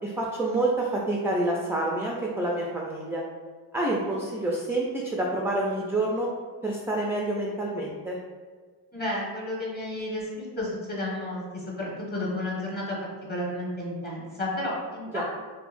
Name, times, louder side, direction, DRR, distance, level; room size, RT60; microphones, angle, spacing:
voice 1, 0.0-3.2 3.7-6.3 6.6-8.2 15.1-15.2, right 2 dB, 5° right, -3 dB, 0.3 m, -28 dB
voice 2, 8.9-15.2, left 1 dB, 25° left, -4 dB, 1.3 m, -32 dB
3.5 x 2.6 x 2.5 m, 1.4 s
cardioid pair, 75°, 42 cm